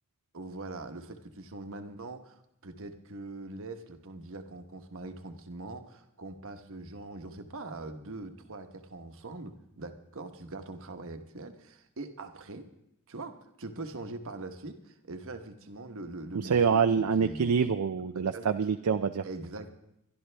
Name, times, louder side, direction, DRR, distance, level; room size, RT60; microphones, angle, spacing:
voice 1, 0.3-12.7 13.1-17.5 18.3-18.5 19.2-19.8, right 2 dB, 65° right, 7 dB, 1.2 m, -42 dB
voice 2, 16.3-19.3, right 6 dB, 80° right, 8 dB, 0.5 m, -26 dB
22.5 x 12.0 x 3.4 m, 0.81 s
head